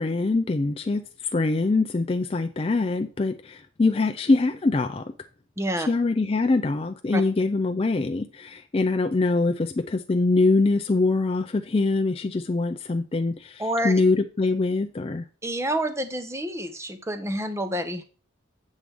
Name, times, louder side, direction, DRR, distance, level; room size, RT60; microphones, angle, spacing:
voice 1, 0.0-5.1 5.8-15.2, left 3 dB, 30° left, 0.4 m, -24 dB
voice 2, 5.6-5.9 7.1-7.2 13.6-13.9 15.4-18.0, right 1 dB, 15° right, 0.8 m, -28 dB
7.8 x 7.2 x 3.5 m
head